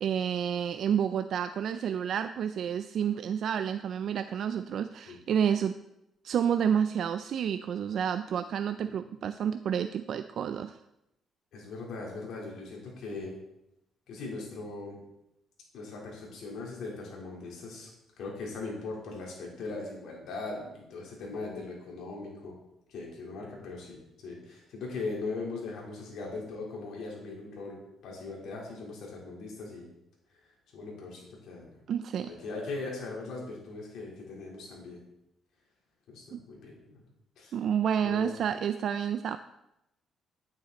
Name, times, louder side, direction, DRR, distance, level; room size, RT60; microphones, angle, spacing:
voice 1, 0.0-5.8 6.2-10.8 31.9-32.3 36.3-36.4 37.5-39.4, right 8 dB, 65° right, 10 dB, 0.4 m, -29 dB
voice 2, 11.5-13.4 14.1-15.0 15.7-17.9 18.2-22.6 22.9-29.9 30.4-31.8 32.2-35.0 36.1-37.0 37.4-37.6 38.0-38.3, left 3 dB, 75° left, -2 dB, 3.9 m, -40 dB
9.8 x 8.9 x 4.2 m, 0.87 s
cardioid pair, 90°, 0 cm